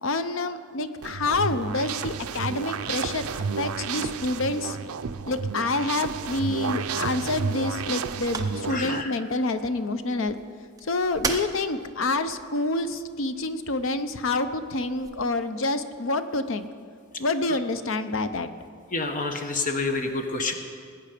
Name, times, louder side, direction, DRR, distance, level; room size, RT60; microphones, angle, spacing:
voice 1, 0.0-4.8 5.3-10.4 10.8-16.7 17.2-18.5, left 2 dB, 60° left, 10 dB, 0.7 m, -27 dB
sound 1, 1.0-9.0, right 6 dB, 75° right, 0.5 m, -31 dB
sound 2, 6.4-15.2, right 4 dB, 15° right, 0.6 m, -41 dB
voice 2, 8.7-9.1 17.5-17.6 18.9-20.5, left 3 dB, 35° left, 5 dB, 0.9 m, -28 dB
19.5 x 8.8 x 5.1 m, 2.2 s
head